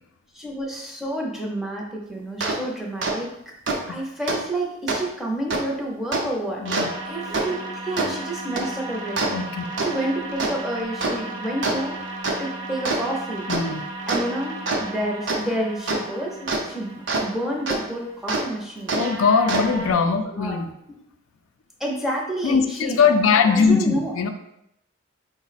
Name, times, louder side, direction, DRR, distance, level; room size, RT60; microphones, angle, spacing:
voice 1, 0.3-3.3 3.9-6.6 7.0-9.4 9.8-13.5 14.1-19.0 19.7-20.0 20.3-20.6 21.8-23.0 23.5-24.1, right 1 dB, ahead, -2 dB, 0.5 m, -29 dB
sound 1, 2.4-2.5 3.0-3.1 3.7-3.8 4.3-4.4 4.9-5.0 5.5-5.6 6.1-6.2 6.6-17.2 17.7-17.8 18.3-18.4 18.9-19.9, right 2 dB, 60° right, 0.6 m, -28 dB
voice 2, 6.6-6.9 9.3-9.7 13.5-13.8 18.9-20.7 22.4-24.3, left 5 dB, 85° left, 6 dB, 0.4 m, -21 dB
4.8 x 2.1 x 4.0 m, 0.80 s
head